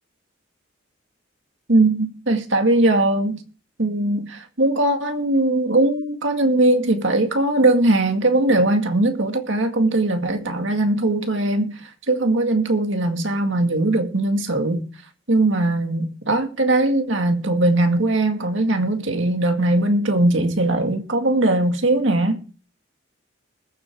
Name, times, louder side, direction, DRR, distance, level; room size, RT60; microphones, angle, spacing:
voice 1, 1.7-3.4 3.8-14.9 15.3-22.4, right 2 dB, 75° right, 2.0 m, -20 dB
21.0 x 7.8 x 3.7 m
head